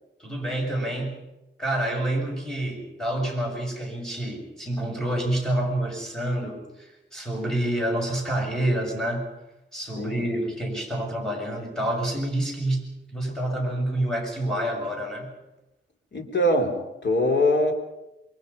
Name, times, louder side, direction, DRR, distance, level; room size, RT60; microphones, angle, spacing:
voice 1, 0.2-1.2 1.6-9.3 9.7-15.3, right 1 dB, 5° left, -1 dB, 7.0 m, -28 dB
voice 2, 10.0-10.4 16.1-17.7, left 1 dB, 75° left, 3 dB, 4.0 m, -23 dB
27.5 x 23.5 x 5.6 m, 0.93 s
wide cardioid pair, 140°, 19 cm